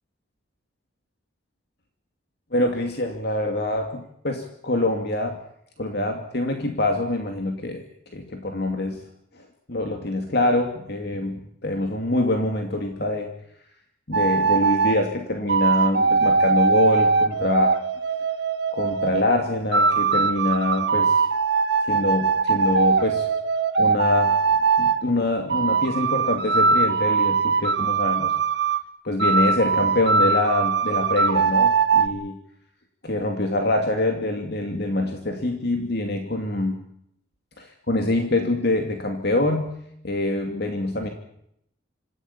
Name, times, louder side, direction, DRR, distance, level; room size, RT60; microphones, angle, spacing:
voice 1, 2.5-5.4 5.8-7.9 8.1-9.0 9.3-9.4 9.7-13.3 14.1-17.7 18.7-21.2 21.8-23.3 23.8-24.3 24.8-28.3 29.0-32.4 33.0-36.8 37.6-39.8 40.0-41.1, left 2 dB, 55° left, 4 dB, 2.6 m, -25 dB
sound 1, 14.1-15.0 15.5-19.2 19.7-25.0 25.5-28.8 29.2-32.1, right 4 dB, 55° right, 1.4 m, -21 dB
26.5 x 16.0 x 8.7 m, 0.73 s
head